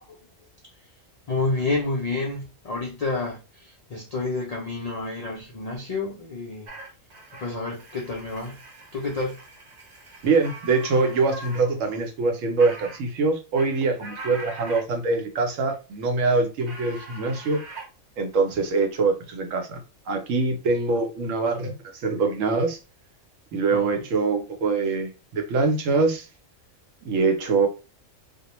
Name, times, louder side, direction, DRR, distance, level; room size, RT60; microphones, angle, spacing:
voice 1, 1.3-6.7 7.4-8.6 8.9-9.4 11.0-11.1 11.9-12.0 23.7-24.0, left 3 dB, 65° left, 0.3 m, -29 dB
sound 1, 6.7-11.7 11.9-12.0 12.6-13.0 13.3-14.8 16.6-17.9, right 2 dB, 50° right, 0.5 m, -42 dB
voice 2, 10.2-17.6 18.2-19.8 20.1-21.7 22.0-22.8 23.5-26.3 27.0-27.7, right 4 dB, 70° right, 1.0 m, -24 dB
2.3 x 2.1 x 2.9 m
omnidirectional pair, 1.4 m